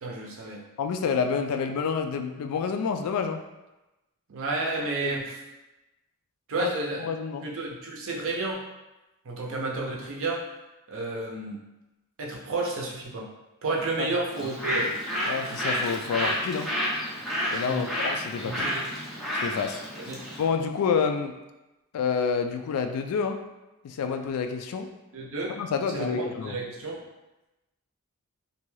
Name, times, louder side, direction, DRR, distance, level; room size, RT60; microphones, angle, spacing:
voice 1, 0.0-0.6 4.3-5.3 6.5-7.0 7.4-8.6 9.2-10.4 10.9-11.6 12.2-13.3 13.6-14.9 17.7-17.9 18.4-18.9 20.1-20.2 25.1-25.5 25.9-27.0, right 2 dB, 65° right, -1 dB, 0.6 m, -31 dB
voice 2, 0.8-3.4 5.0-5.1 6.6-6.7 7.0-7.5 14.0-14.1 15.3-16.7 17.5-18.7 19.4-19.8 20.4-21.3 21.9-23.4 23.8-24.9 25.6-26.6, left 6 dB, 70° left, 10 dB, 0.3 m, -28 dB
Bird, 14.3-20.5, equal, ahead, 0.5 m, -30 dB
2.6 x 2.2 x 3.1 m, 1.0 s
head